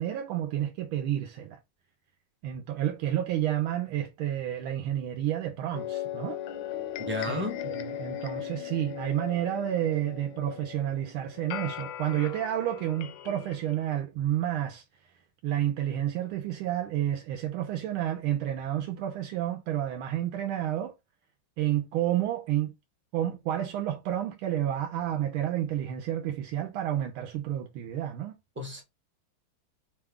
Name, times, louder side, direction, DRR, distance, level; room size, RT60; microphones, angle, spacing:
voice 1, 0.0-1.6 2.4-6.4 7.3-14.8 15.4-20.9 21.6-22.7 23.1-28.4, right 11 dB, 80° right, 1.4 m, -30 dB
sound 1, 5.7-13.9, left 10 dB, 70° left, 1.2 m, -38 dB
voice 2, 7.1-7.6 28.6-28.8, left 1 dB, 10° right, 0.5 m, -32 dB
5.3 x 2.3 x 3.5 m
omnidirectional pair, 2.3 m